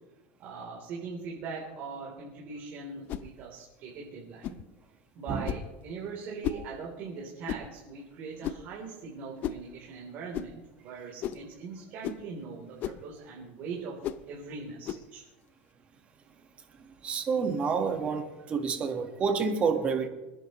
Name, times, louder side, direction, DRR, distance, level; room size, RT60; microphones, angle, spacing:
voice 1, 0.4-4.6 5.1-14.0 14.3-15.2, right 4 dB, 45° right, 3.6 m, -41 dB
sound 1, 3.1-3.3 4.4-4.6 5.4-5.7 6.4-6.7 7.5-7.7 8.4-8.7 9.4-9.6 10.3-10.5 11.2-11.5 12.0-12.2 12.8-13.0 14.0-14.2 14.8-15.1, left 10 dB, 40° left, 0.6 m, -34 dB
voice 2, 17.0-20.1, right 5 dB, 25° right, 1.6 m, -28 dB
27.0 x 10.5 x 3.2 m
supercardioid pair, 150°, 4 cm